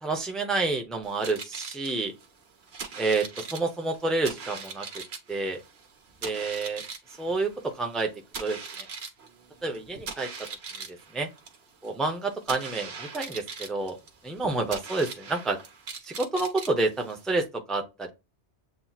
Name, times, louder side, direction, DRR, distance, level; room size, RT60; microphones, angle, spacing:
voice 1, 0.0-2.1 3.0-4.9 5.3-5.6 6.2-6.8 7.2-8.1 8.4-8.9 9.6-10.3 10.9-11.3 11.8-14.0 14.2-15.6 16.0-18.1, right 3 dB, ahead, 0.6 m, -29 dB
sound 1, 1.0-17.5, right 5 dB, 70° right, 1.2 m, -41 dB
7.5 x 2.8 x 2.4 m
omnidirectional pair, 1.1 m